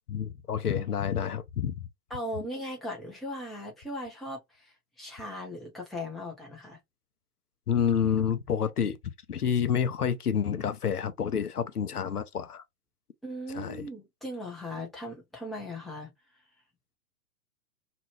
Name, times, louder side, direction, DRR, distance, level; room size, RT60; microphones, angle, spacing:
voice 1, 0.1-1.9 7.7-9.0 9.3-12.6 13.5-13.9, left 8 dB, 80° left, 0.7 m, -28 dB
voice 2, 2.1-6.8 13.2-16.1, left 1 dB, ahead, 0.6 m, -38 dB
3.0 x 2.3 x 3.0 m
figure-of-eight pair, 110°, 45 cm